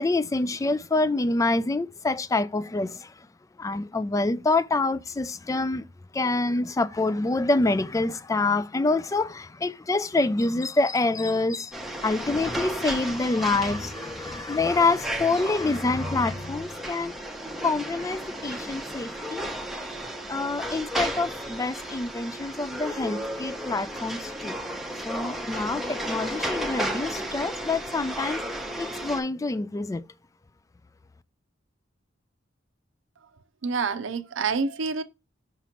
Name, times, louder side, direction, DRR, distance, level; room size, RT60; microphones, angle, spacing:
voice 1, 0.0-3.3 3.6-5.8 6.1-11.8 12.0-17.2 17.6-19.5 20.3-24.6 25.0-28.4 28.8-30.1, left 3 dB, 15° left, 0.3 m, -26 dB
sound 1, 11.7-29.2, right 1 dB, ahead, 0.7 m, -34 dB
voice 2, 33.6-35.0, right 4 dB, 75° right, 0.6 m, -27 dB
5.9 x 2.9 x 5.6 m
head